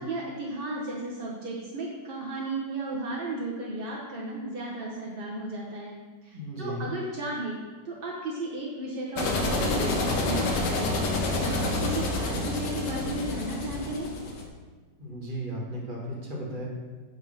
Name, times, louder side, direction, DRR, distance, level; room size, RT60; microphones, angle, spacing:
voice 1, 0.0-5.9 6.2-7.6 7.8-14.1, right 2 dB, 45° right, -4 dB, 0.7 m, -34 dB
voice 2, 6.3-6.9 15.0-16.7, equal, 30° right, -4 dB, 1.4 m, -35 dB
sound 1, 9.2-14.5, left 2 dB, 70° left, 1.3 m, -28 dB
8.0 x 3.3 x 5.3 m, 1.4 s
omnidirectional pair, 2.1 m